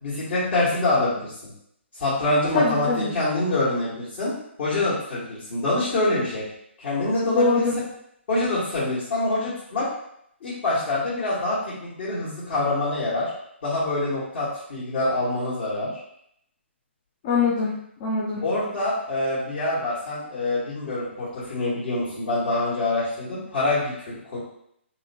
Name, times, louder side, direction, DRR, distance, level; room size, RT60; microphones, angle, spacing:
voice 1, 0.0-1.5 1.9-6.4 6.8-7.7 8.3-9.9 10.4-13.3 13.6-15.9 18.4-24.4, left 2 dB, 45° left, -13 dB, 1.5 m, -25 dB
voice 2, 2.5-3.1 7.3-7.7 17.2-18.4, left 4 dB, 30° left, -4 dB, 0.5 m, -23 dB
3.5 x 2.2 x 2.8 m, 0.73 s
figure-of-eight pair, 135°, 7 cm